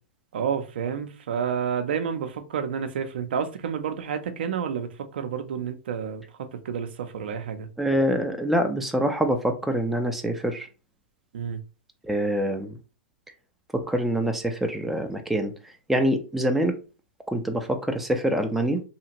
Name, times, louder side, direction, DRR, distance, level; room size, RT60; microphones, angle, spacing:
voice 1, 0.3-7.7 11.3-11.6, right 7 dB, 70° right, 0.5 m, -30 dB
voice 2, 7.8-10.7 12.0-12.8 13.8-16.8 17.3-18.8, equal, ahead, 0.5 m, -25 dB
2.8 x 2.4 x 2.9 m
hypercardioid pair, 115°, 6 cm